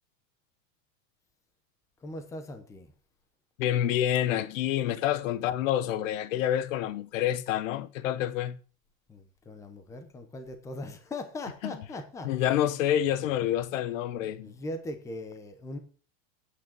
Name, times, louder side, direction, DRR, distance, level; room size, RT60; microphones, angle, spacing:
voice 1, 2.0-2.9 9.1-12.3 14.3-15.8, left 2 dB, 10° left, 0.8 m, -40 dB
voice 2, 3.6-8.6 11.6-11.7 12.2-14.5, left 11 dB, 80° left, 1.0 m, -28 dB
9.1 x 6.4 x 7.5 m
supercardioid pair, 180°, 39 cm